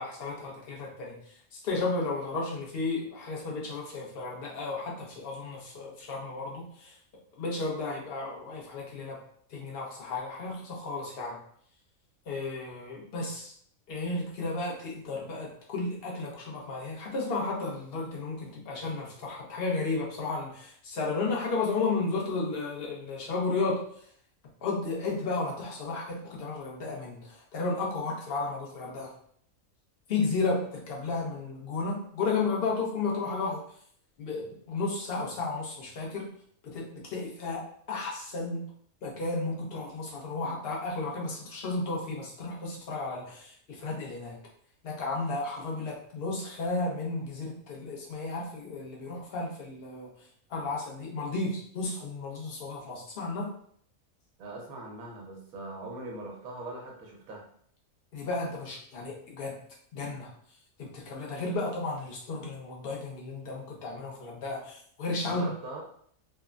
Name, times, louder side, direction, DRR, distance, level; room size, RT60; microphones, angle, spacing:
voice 1, 0.0-6.9 7.4-9.2 9.5-11.4 12.3-13.5 13.9-23.8 24.6-29.1 30.1-33.6 34.2-36.3 36.6-38.7 39.0-44.4 44.8-53.5 58.1-59.6 59.9-60.3 60.8-65.5, left 3 dB, 50° left, -3 dB, 0.8 m, -33 dB
voice 2, 54.4-57.5 65.2-65.8, right 2 dB, 85° right, -1 dB, 1.2 m, -41 dB
3.2 x 2.0 x 2.3 m, 0.62 s
omnidirectional pair, 1.5 m